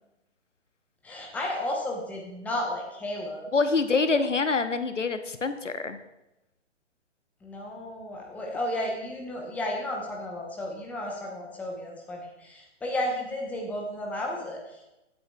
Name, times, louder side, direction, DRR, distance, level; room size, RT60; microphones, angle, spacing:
voice 1, 1.0-3.5 7.4-14.8, left 1 dB, 5° left, 0 dB, 0.9 m, -33 dB
voice 2, 3.5-6.0, left 4 dB, 85° left, 10 dB, 0.9 m, -25 dB
16.0 x 8.7 x 2.3 m, 0.94 s
figure-of-eight pair, 130°, 36 cm